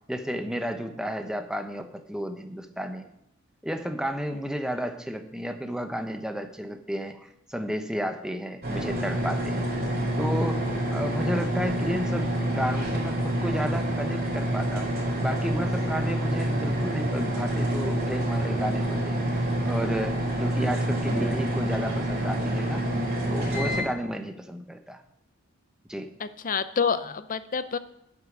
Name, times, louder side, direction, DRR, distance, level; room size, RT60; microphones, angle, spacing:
voice 1, 0.1-3.0 3.6-9.7 10.2-10.7 10.9-14.9 15.2-19.3 19.7-22.9 23.3-25.0 25.9-26.1, equal, 5° right, 6 dB, 0.9 m, -32 dB
sound 1, 8.6-23.8, right 1 dB, 50° right, 3.9 m, -27 dB
voice 2, 26.2-27.8, left 6 dB, 40° left, 13 dB, 0.7 m, -28 dB
8.9 x 8.6 x 6.1 m, 0.79 s
head